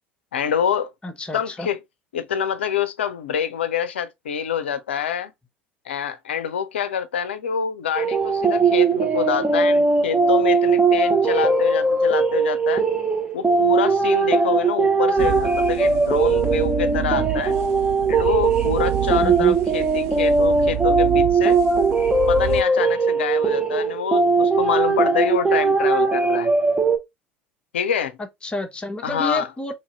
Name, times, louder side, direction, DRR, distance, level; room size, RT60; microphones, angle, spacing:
voice 1, 0.3-0.9 1.3-1.8 2.1-5.3 5.9-12.8 13.3-17.6 18.1-21.6 22.3-26.5 27.7-28.2 29.0-29.5, left 8 dB, 75° left, 0.5 m, -26 dB
voice 2, 1.0-1.7 19.1-19.6 28.2-29.7, left 2 dB, 15° left, 0.9 m, -30 dB
sound 1, 7.9-27.0, right 4 dB, 15° right, 0.8 m, -19 dB
sound 2, 15.2-22.6, right 14 dB, 55° right, 0.4 m, -29 dB
2.9 x 2.6 x 2.9 m
figure-of-eight pair, 65°, 6 cm